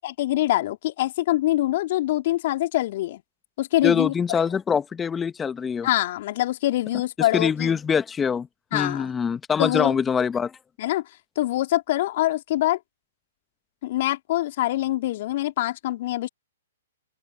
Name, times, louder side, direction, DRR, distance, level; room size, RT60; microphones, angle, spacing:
voice 1, 0.0-3.2 3.6-4.4 5.8-7.8 8.7-9.1 9.6-10.0 10.8-11.0 11.4-12.8 13.8-16.3, left 15 dB, 50° left, 3.0 m, -24 dB
voice 2, 3.8-5.9 7.2-8.5 8.7-10.5, left 6 dB, 15° left, 1.5 m, -24 dB
open air
figure-of-eight pair, 120°, 0 cm